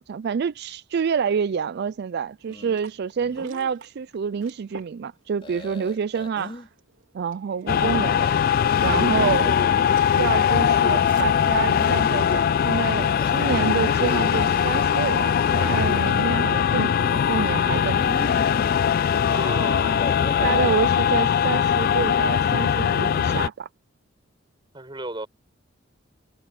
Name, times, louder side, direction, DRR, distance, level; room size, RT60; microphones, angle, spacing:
voice 1, 0.0-6.7 7.1-8.4 8.8-9.5 10.2-18.3 20.2-23.7, right 6 dB, 55° right, 0.4 m, -28 dB
sound 1, 2.3-20.1, right 2 dB, 75° right, 3.3 m, -47 dB
sound 2, 2.5-2.8 3.2-3.7 5.4-6.7 8.7-10.1 11.6-12.0 13.2-14.7 15.4-16.2 17.7-18.8 19.8-20.8, left 1 dB, 25° left, 3.6 m, -38 dB
sound 3, 7.7-23.5, left 8 dB, 50° left, 0.3 m, -21 dB
voice 2, 9.1-9.7 19.3-20.1 24.7-25.3, right 2 dB, 25° right, 6.3 m, -34 dB
head